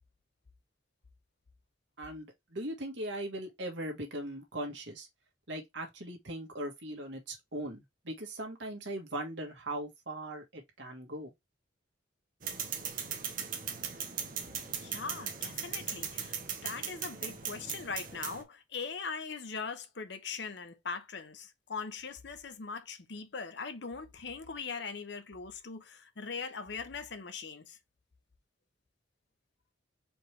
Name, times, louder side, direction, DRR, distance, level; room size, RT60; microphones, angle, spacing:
voice 1, 2.0-5.1 5.5-11.3, right 1 dB, 65° right, 1.5 m, -39 dB
sound 1, 12.4-18.4, right 7 dB, 45° right, 1.0 m, -38 dB
voice 2, 14.7-16.4 16.6-27.8, left 5 dB, 60° left, 0.7 m, -41 dB
4.4 x 3.3 x 3.2 m
head